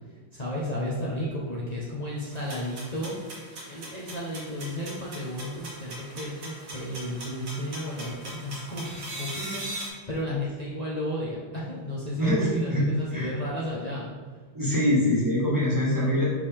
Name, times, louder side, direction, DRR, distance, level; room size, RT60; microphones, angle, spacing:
voice 1, 0.1-3.1 3.7-14.1, left 1 dB, 70° left, -6 dB, 0.3 m, -33 dB
sound 1, 2.3-9.9, right 1 dB, 50° right, 1.5 m, -40 dB
voice 2, 12.2-12.8 13.1-13.3 14.5-16.3, left 1 dB, 15° right, -7 dB, 1.0 m, -24 dB
5.4 x 5.2 x 3.4 m, 1.5 s
omnidirectional pair, 2.1 m